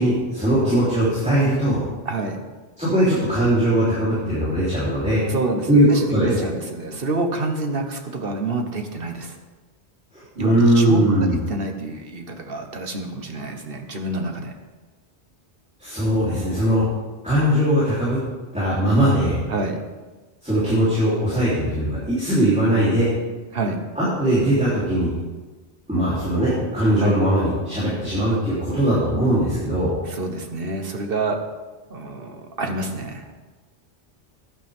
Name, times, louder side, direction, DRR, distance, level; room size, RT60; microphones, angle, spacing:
voice 1, 0.0-1.8 2.8-5.2 5.7-6.4 10.4-11.4 15.8-16.8 17.2-18.2 18.5-19.4 20.4-23.1 24.0-25.1 25.9-29.9, right 1 dB, 5° right, -10 dB, 3.6 m, -20 dB
voice 2, 2.0-2.4 5.3-9.4 10.4-11.2 11.5-14.5 19.5-19.8 23.5-23.8 27.0-27.2 30.0-31.4 31.9-33.3, right 2 dB, 55° right, 4 dB, 1.4 m, -28 dB
14.5 x 10.5 x 3.7 m, 1.3 s
omnidirectional pair, 1.2 m